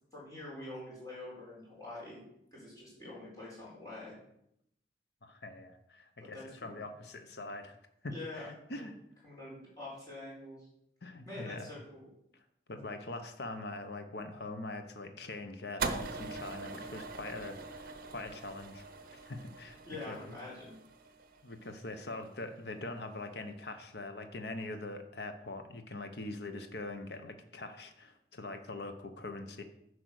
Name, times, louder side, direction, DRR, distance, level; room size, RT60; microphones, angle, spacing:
voice 1, 0.1-2.2 2.5-4.2 6.2-6.8 8.1-8.5 8.8-8.9 9.2-10.7 11.3-12.1 19.8-20.8, left 2 dB, 20° left, -6 dB, 4.4 m, -45 dB
voice 2, 5.2-7.7 8.0-9.0 11.0-11.7 12.7-18.8 19.1-19.8 20.1-20.2 21.4-29.6, left 2 dB, 65° left, 7 dB, 0.9 m, -43 dB
sound 1, 15.8-22.1, right 4 dB, 50° right, 0.7 m, -42 dB
10.0 x 4.8 x 6.5 m, 0.77 s
head